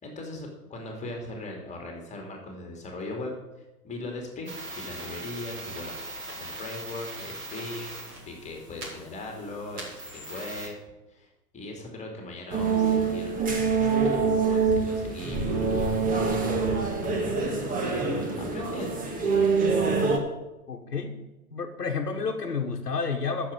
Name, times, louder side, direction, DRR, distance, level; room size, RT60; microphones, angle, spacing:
voice 1, 0.0-3.3 3.8-6.0 6.4-10.7 11.1-11.3 11.5-15.6 17.1-19.1, left 2 dB, 15° left, 1 dB, 2.8 m, -39 dB
sound 1, 4.5-10.7, right 1 dB, 35° right, 4.7 m, -40 dB
sound 2, 12.5-20.2, right 4 dB, 15° right, 1.6 m, -25 dB
voice 2, 20.7-21.2 21.5-23.5, left 5 dB, 80° left, 1 dB, 1.3 m, -30 dB
10.5 x 7.1 x 8.0 m, 1.0 s
figure-of-eight pair, 105°, 47 cm